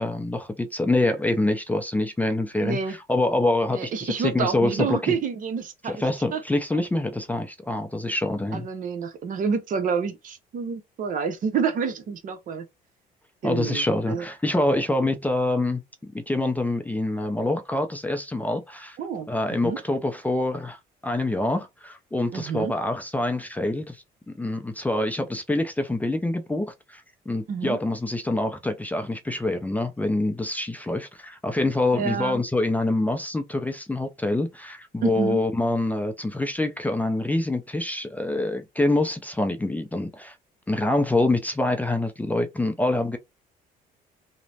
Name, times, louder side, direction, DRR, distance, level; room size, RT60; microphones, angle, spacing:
voice 1, 0.0-5.2 5.8-8.7 13.4-19.0 19.3-20.8 21.0-24.0 24.3-40.3 40.7-43.2, left 2 dB, 10° left, 0.4 m, -26 dB
voice 2, 2.6-3.0 3.7-6.4 6.7-6.8 8.5-12.7 13.4-14.2 19.0-19.3 19.6-19.8 22.3-22.7 27.5-27.8 31.9-32.4 35.0-35.4, right 6 dB, 50° right, 0.7 m, -28 dB
3.0 x 2.0 x 2.7 m
cardioid pair, 110°, 17 cm